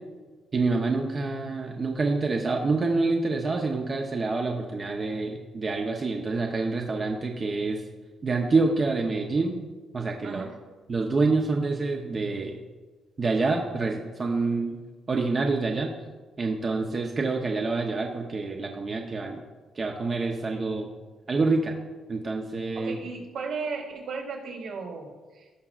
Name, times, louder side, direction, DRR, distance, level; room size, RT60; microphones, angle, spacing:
voice 1, 0.5-7.8 8.2-9.6 9.9-10.4 10.9-12.6 13.2-14.8 15.1-15.9 16.4-19.4 19.7-20.9 21.3-21.7 22.1-23.0, right 3 dB, 35° right, 1 dB, 0.8 m, -27 dB
voice 2, 10.2-10.6 22.7-25.5, right 4 dB, 80° right, -3 dB, 2.6 m, -35 dB
16.5 x 5.9 x 2.4 m, 1.3 s
cardioid pair, 90°, 0 cm